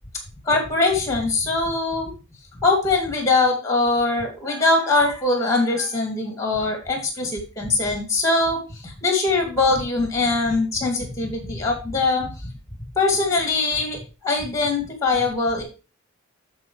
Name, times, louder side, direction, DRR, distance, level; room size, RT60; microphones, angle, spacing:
voice 1, 0.4-2.1 2.6-12.3 13.0-15.6, left 3 dB, 15° left, 2 dB, 2.4 m, -22 dB
12.0 x 5.1 x 3.2 m, 0.32 s
head